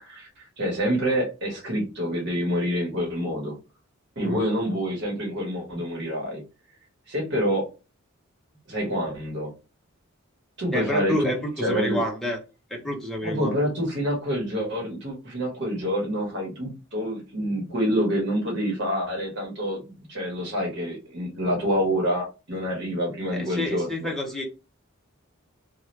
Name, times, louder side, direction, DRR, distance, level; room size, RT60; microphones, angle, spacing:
voice 1, 0.0-3.5 4.2-6.4 7.1-7.7 8.7-9.5 10.6-11.3 11.6-12.0 13.2-24.1, equal, 55° right, 1.2 m, -27 dB
voice 2, 10.7-12.4 12.7-13.5 23.3-24.4, equal, ahead, 0.7 m, -28 dB
2.8 x 2.4 x 3.1 m
head